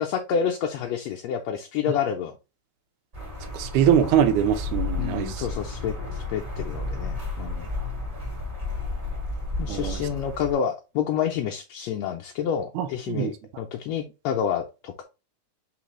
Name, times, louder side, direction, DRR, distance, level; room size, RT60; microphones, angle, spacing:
voice 1, 0.0-2.3 5.0-7.7 9.6-15.0, left 8 dB, 80° left, 1.6 m, -29 dB
sound 1, 3.1-10.5, left 3 dB, 30° right, 1.8 m, -32 dB
voice 2, 3.5-5.4 9.7-10.0 12.8-13.3, right 9 dB, 90° right, 2.2 m, -23 dB
4.2 x 4.0 x 3.0 m
omnidirectional pair, 3.4 m